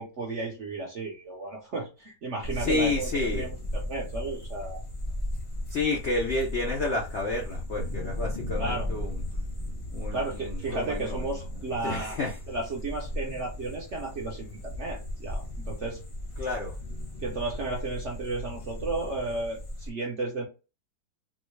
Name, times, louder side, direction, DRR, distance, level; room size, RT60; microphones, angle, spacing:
voice 1, 0.0-4.8 8.6-8.9 10.1-12.2 12.5-16.0 17.2-20.5, right 3 dB, 65° right, 0.7 m, -33 dB
sound 1, 2.4-19.9, left 1 dB, 35° left, 0.7 m, -36 dB
voice 2, 2.5-3.5 5.7-9.2 9.9-11.2 11.8-12.4 16.4-16.8, left 2 dB, 70° left, 0.6 m, -30 dB
3.8 x 2.1 x 3.1 m
omnidirectional pair, 1.9 m